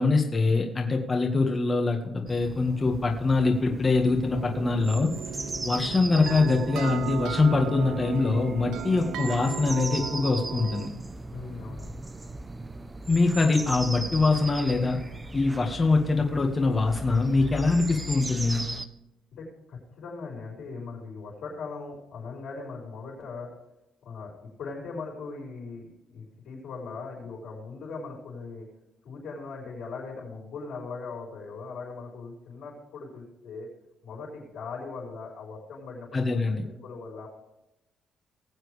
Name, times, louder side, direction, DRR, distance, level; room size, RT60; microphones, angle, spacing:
voice 1, 0.0-5.1 5.6-10.9 13.1-15.0 15.3-18.6 36.1-36.6, left 3 dB, 30° left, 2 dB, 1.8 m, -24 dB
sound 1, 2.3-18.9, right 2 dB, 20° right, 0.9 m, -38 dB
sound 2, 4.3-10.9, right 9 dB, 85° right, 0.5 m, -36 dB
voice 2, 11.3-11.9 19.4-23.5 24.0-28.7 29.0-33.7 34.0-37.3, left 4 dB, 75° left, -6 dB, 5.4 m, -40 dB
20.0 x 7.5 x 3.5 m, 0.90 s
cardioid pair, 90°, 0 cm